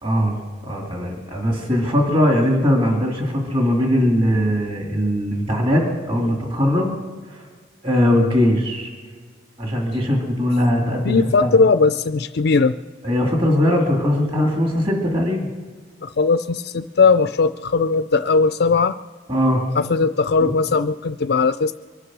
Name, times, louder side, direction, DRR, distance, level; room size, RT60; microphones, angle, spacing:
voice 1, 0.0-7.0 7.3-7.4 7.8-8.9 9.6-11.5 13.0-15.5 19.3-19.7 20.4-20.5, left 1 dB, 30° right, 0 dB, 2.2 m, -20 dB
voice 2, 11.0-12.8 16.0-19.0 19.8-21.7, left 4 dB, 55° left, 10 dB, 0.4 m, -18 dB
24.0 x 9.7 x 6.1 m, 1.5 s
head